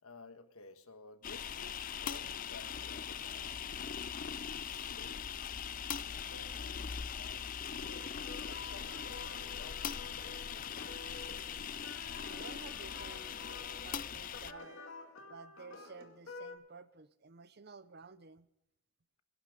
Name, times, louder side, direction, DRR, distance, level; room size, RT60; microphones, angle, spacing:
voice 1, 0.0-3.9 4.7-5.3 6.1-6.9 7.1-10.7, left 4 dB, 90° left, 8 dB, 1.4 m, -55 dB
sound 1, 1.2-14.5, left 8 dB, 40° left, 0.4 m, -41 dB
sound 2, 7.8-16.6, left 3 dB, 60° left, 2.3 m, -50 dB
sound 3, 10.1-14.9, right 1 dB, 10° right, 7.2 m, -67 dB
voice 2, 12.2-13.4 13.8-14.8 15.3-18.5, right 4 dB, 50° right, 15 dB, 0.7 m, -53 dB
23.0 x 11.5 x 3.6 m, 0.85 s
head